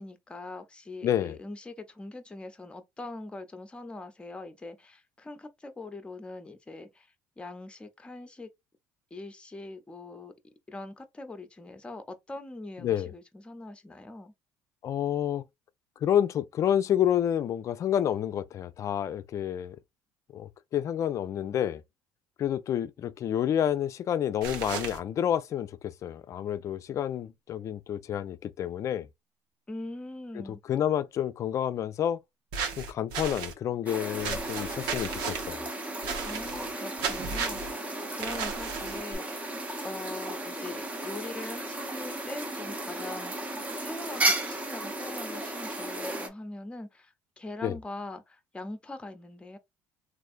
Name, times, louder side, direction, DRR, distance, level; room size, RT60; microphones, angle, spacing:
voice 1, 0.0-7.1 7.4-8.5 9.1-10.3 10.7-14.3 29.7-30.6 36.2-39.5 39.8-49.6, left 2 dB, 15° left, 0.7 m, -42 dB
voice 2, 1.0-1.4 12.8-13.1 14.8-15.4 16.0-19.8 20.3-21.8 22.4-29.1 30.3-32.2 32.8-35.7 47.6-47.8, left 10 dB, 45° left, 0.4 m, -29 dB
sound 1, 24.4-25.0 32.5-33.5 34.2-35.5 36.0-36.7 37.0-37.7 38.2-39.2, right 6 dB, 75° right, 0.9 m, -34 dB
sound 2, 33.9-46.3, right 1 dB, 20° right, 0.8 m, -34 dB
3.3 x 2.5 x 2.5 m
supercardioid pair, 100°, 7 cm